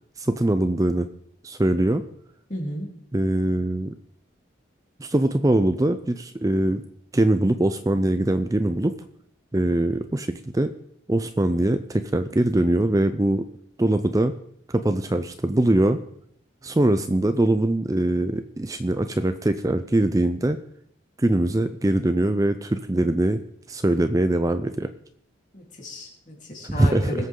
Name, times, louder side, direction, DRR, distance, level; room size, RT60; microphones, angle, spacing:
voice 1, 0.2-1.1 1.4-2.0 3.1-3.9 5.0-6.8 7.1-9.0 9.5-10.7 11.1-13.5 13.8-14.3 14.7-16.0 16.6-20.6 21.2-23.4 23.7-24.9 26.6-27.1, right 1 dB, 20° right, 10 dB, 0.4 m, -22 dB
voice 2, 2.5-2.9 25.5-27.3, equal, 40° left, -2 dB, 3.7 m, -33 dB
21.0 x 8.3 x 3.8 m, 0.68 s
head